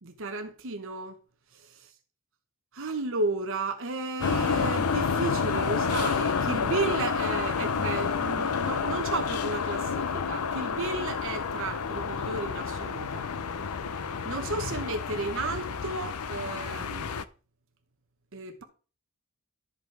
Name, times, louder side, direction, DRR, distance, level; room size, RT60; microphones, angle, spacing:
voice 1, 0.0-1.2 1.5-1.9 2.7-13.3 14.2-17.1 18.3-18.6, right 3 dB, 65° right, 1.0 m, -33 dB
sound 1, 4.2-17.2, left 5 dB, 85° left, 0.6 m, -29 dB
12.5 x 5.2 x 4.7 m
head